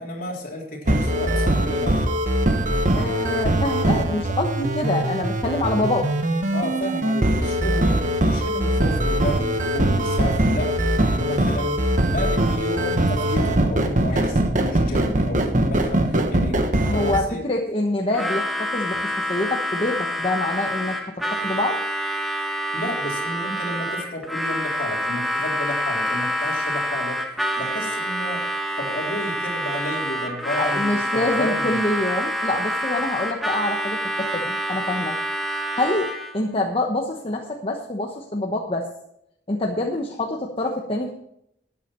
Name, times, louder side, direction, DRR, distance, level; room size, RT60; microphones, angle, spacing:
voice 1, 0.0-2.0 6.5-17.4 22.7-28.5 28.8-31.8, left 1 dB, 55° left, -1 dB, 3.5 m, -32 dB
sound 1, 0.9-17.2, right 1 dB, 45° right, 1.2 m, -22 dB
voice 2, 3.0-6.1 16.8-21.0 21.3-21.8 30.6-35.2 35.4-38.9 39.5-41.1, left 2 dB, 35° left, 1 dB, 1.1 m, -26 dB
Harmonica, 18.1-36.4, equal, ahead, 1.4 m, -27 dB
13.0 x 9.7 x 4.4 m, 0.76 s
head